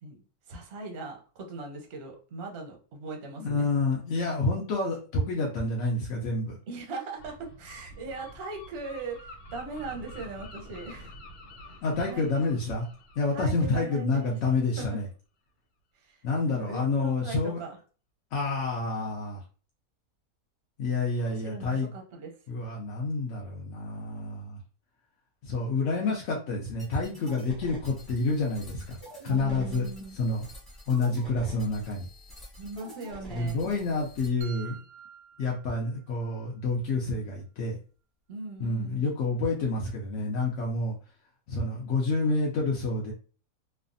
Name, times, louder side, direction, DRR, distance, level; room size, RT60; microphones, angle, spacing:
voice 1, 0.0-3.7 6.7-11.2 11.6-11.8 12.0-12.2 13.3-15.0 15.9-17.8 21.2-22.3 29.3-30.2 32.6-33.6 38.3-39.1, right 3 dB, 55° right, 2 dB, 0.8 m, -40 dB
voice 2, 3.4-6.6 11.8-12.9 13.2-15.0 16.2-17.6 18.3-19.4 20.8-21.9 22.5-24.6 25.4-29.9 30.1-30.5 30.9-32.1 33.3-34.8 35.4-37.8 38.6-41.0 41.5-43.1, left 3 dB, 65° left, -2 dB, 0.8 m, -28 dB
Gull seagull, 7.2-14.7, equal, 80° left, 1.3 m, -48 dB
sound 1, 26.8-34.3, equal, ahead, 0.8 m, -46 dB
sound 2, 34.4-36.4, right 7 dB, 85° right, 1.1 m, -48 dB
3.2 x 2.0 x 2.5 m, 0.38 s
omnidirectional pair, 1.6 m